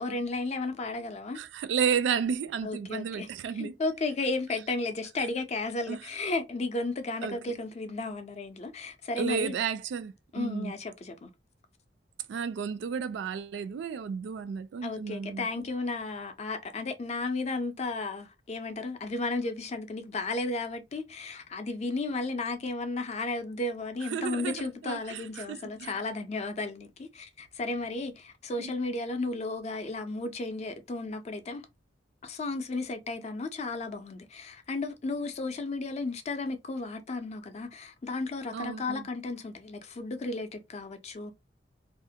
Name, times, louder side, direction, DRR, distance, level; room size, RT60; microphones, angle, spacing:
voice 1, 0.0-1.4 2.6-9.6 10.3-11.3 14.8-31.7 32.2-41.3, left 3 dB, 35° left, 0.4 m, -34 dB
voice 2, 1.3-3.7 5.9-6.0 7.2-7.4 9.2-10.7 12.3-15.5 24.1-25.9 28.6-28.7 38.5-39.1, right 7 dB, 75° right, 0.3 m, -32 dB
2.4 x 2.1 x 2.7 m
head